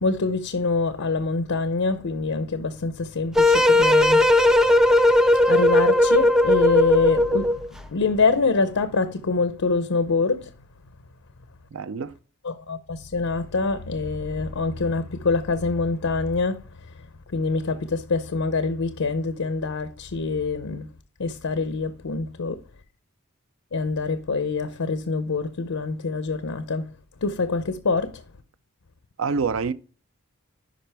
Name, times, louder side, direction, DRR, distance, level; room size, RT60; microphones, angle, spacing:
voice 1, 0.0-4.5 5.0-5.1 5.5-7.5 7.9-10.5 12.4-16.6 17.3-20.9 21.2-22.6 23.7-26.9 27.2-28.2, left 4 dB, 75° left, 0.6 m, -25 dB
sound 1, 3.4-7.7, left 1 dB, ahead, 0.3 m, -17 dB
voice 2, 11.7-12.2 29.2-29.7, right 5 dB, 65° right, 0.5 m, -26 dB
10.0 x 5.1 x 3.3 m
head